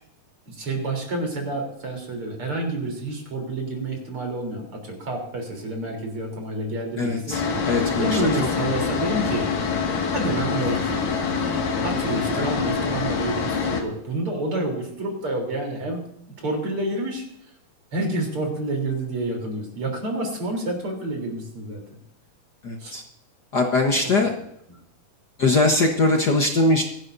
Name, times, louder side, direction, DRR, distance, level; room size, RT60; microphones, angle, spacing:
voice 1, 0.5-7.4 8.0-9.5 10.1-11.5 11.8-16.0 16.4-17.3 17.9-21.8 22.8-22.9 24.0-24.3, right 2 dB, 40° right, 1 dB, 4.3 m, -29 dB
voice 2, 7.0-7.4 7.7-8.2 12.4-12.5 22.6-23.0 23.5-24.3 25.4-26.8, left 2 dB, 60° left, 2 dB, 1.0 m, -21 dB
sound 1, 7.3-13.8, left 5 dB, 80° left, 3.8 m, -25 dB
24.5 x 11.5 x 2.7 m, 0.76 s
omnidirectional pair, 3.9 m